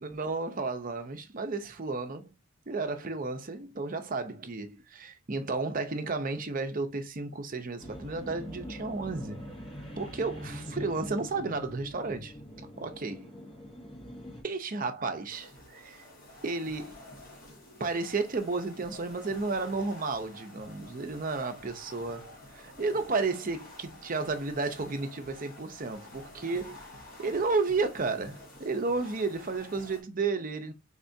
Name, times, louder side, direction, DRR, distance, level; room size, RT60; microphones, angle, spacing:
voice 1, 0.0-2.3 2.7-9.4 10.0-12.3 12.8-13.3 14.4-16.0 16.4-17.0 17.8-26.8 27.2-30.7, right 3 dB, 40° right, 0.6 m, -32 dB
sound 1, 7.8-14.4, equal, 25° left, 1.1 m, -43 dB
sound 2, 15.3-30.0, left 1 dB, 40° left, 1.3 m, -50 dB
3.6 x 3.3 x 2.6 m
head